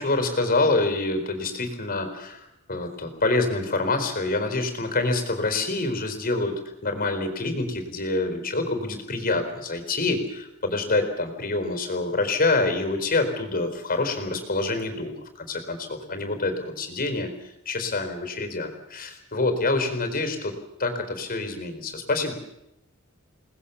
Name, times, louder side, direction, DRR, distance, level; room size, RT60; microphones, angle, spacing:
voice 1, 0.0-15.1 15.4-17.3 17.7-22.3, left 2 dB, 40° left, 7 dB, 4.4 m, -26 dB
29.5 x 19.5 x 7.1 m, 0.86 s
head